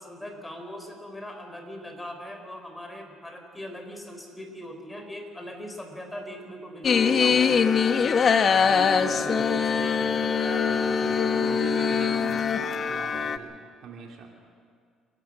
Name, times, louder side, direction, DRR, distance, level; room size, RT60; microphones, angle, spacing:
voice 1, 0.0-7.7, equal, 10° left, 4 dB, 4.1 m, -40 dB
sound 1, 6.8-13.4, left 6 dB, 45° left, 1.1 m, -23 dB
voice 2, 8.5-14.3, right 5 dB, 55° right, 1 dB, 3.4 m, -40 dB
28.5 x 12.0 x 7.6 m, 2.1 s
supercardioid pair, 85°, 0 cm